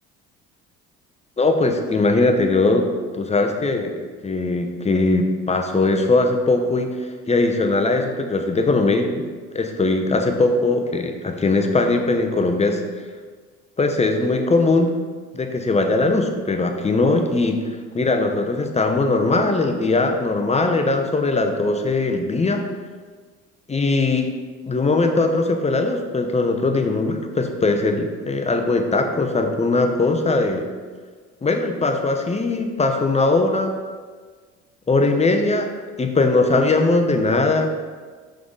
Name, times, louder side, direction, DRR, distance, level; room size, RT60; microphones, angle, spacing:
voice 1, 1.4-2.9 3.1-9.3 9.5-12.8 13.8-14.9 15.3-22.6 23.7-24.3 24.7-30.7 31.4-33.7 34.9-35.7 36.0-37.7, left 3 dB, 20° left, 4 dB, 0.8 m, -20 dB
5.8 x 3.9 x 5.3 m, 1.5 s
supercardioid pair, 75°, 33 cm